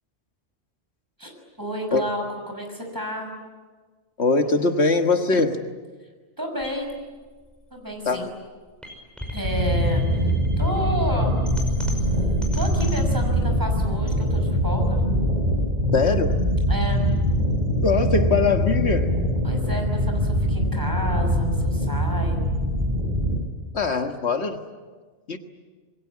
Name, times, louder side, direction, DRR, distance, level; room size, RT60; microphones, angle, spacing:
voice 1, 1.6-3.3 6.4-6.9 7.7-8.3 9.3-11.3 12.5-15.0 16.7-17.0 19.4-22.5, equal, 15° right, 2 dB, 6.2 m, -31 dB
voice 2, 4.2-5.6 8.1-8.2 15.9-16.4 17.8-19.1 23.7-24.6 25.3-25.4, left 4 dB, 75° left, 5 dB, 1.8 m, -21 dB
sound 1, 6.6-18.6, right 3 dB, ahead, 5.7 m, -37 dB
sound 2, 9.4-23.4, equal, 45° right, 6.6 m, -23 dB
27.5 x 21.5 x 9.6 m, 1.4 s
omnidirectional pair, 1.1 m